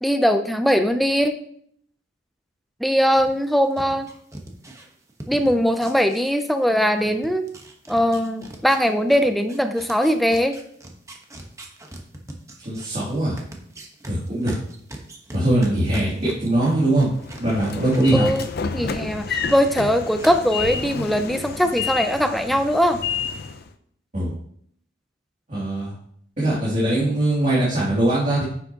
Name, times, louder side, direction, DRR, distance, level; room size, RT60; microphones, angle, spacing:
voice 1, 0.0-1.4 2.8-4.1 5.3-7.5 7.9-10.6 18.1-18.5 18.7-23.0, equal, ahead, 7 dB, 0.4 m, -20 dB
sound 1, 3.1-6.7 7.0-18.5 18.8-19.7 20.2-20.3, right 1 dB, 15° right, 1.0 m, -41 dB
voice 2, 12.6-13.4 14.1-14.6 15.3-18.3 24.1-24.3 25.5-25.9 26.4-28.4, right 1 dB, 40° right, -8 dB, 2.5 m, -21 dB
Train / Sliding door, 17.2-23.7, left 6 dB, 55° left, 0.5 m, -30 dB
9.7 x 6.6 x 2.8 m, 0.66 s
head